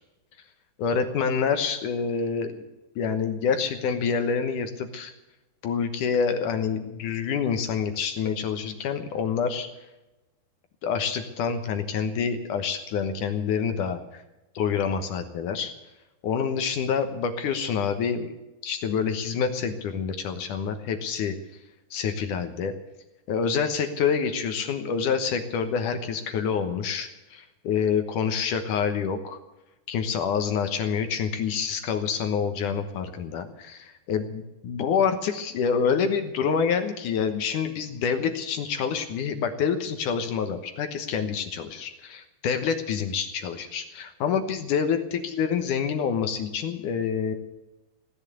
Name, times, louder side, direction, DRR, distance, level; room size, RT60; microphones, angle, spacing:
voice 1, 0.8-2.5 3.0-5.1 5.6-9.7 10.8-14.0 14.6-15.7 16.2-18.3 18.6-21.3 21.9-22.7 23.3-29.4 29.9-47.3, left 6 dB, 65° left, 7 dB, 2.2 m, -27 dB
17.5 x 10.5 x 7.9 m, 0.99 s
omnidirectional pair, 4.7 m